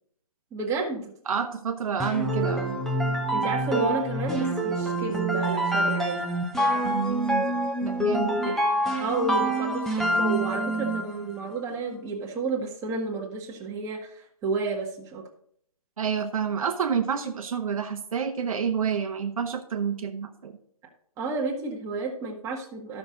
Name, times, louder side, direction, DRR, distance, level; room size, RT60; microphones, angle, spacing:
voice 1, 0.5-1.1 3.3-6.2 8.4-8.6 9.0-15.2 21.2-23.0, right 3 dB, 15° right, -1 dB, 1.6 m, -31 dB
voice 2, 1.3-2.8 6.8-8.6 16.0-20.6, right 7 dB, 65° right, 5 dB, 1.2 m, -29 dB
sound 1, 2.0-11.2, right 1 dB, ahead, 1.0 m, -26 dB
12.0 x 6.3 x 3.8 m, 0.65 s
hypercardioid pair, 145°, 19 cm